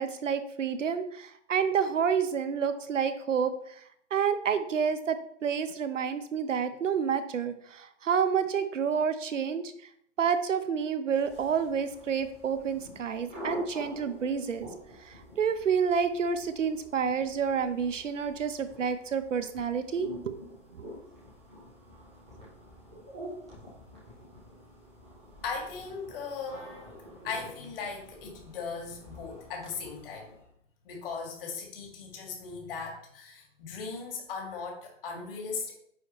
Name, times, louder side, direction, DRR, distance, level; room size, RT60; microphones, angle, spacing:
voice 1, 0.0-3.8 4.1-9.7 10.2-14.7 15.0-20.4 20.7-20.9, right 6 dB, 85° right, 10 dB, 0.9 m, -29 dB
sound 1, 11.2-30.5, equal, 5° right, 0.3 m, -47 dB
voice 2, 25.4-30.3 30.8-35.7, left 5 dB, 50° left, 0 dB, 2.4 m, -38 dB
9.2 x 4.3 x 3.1 m, 0.67 s
hypercardioid pair, 145°, 36 cm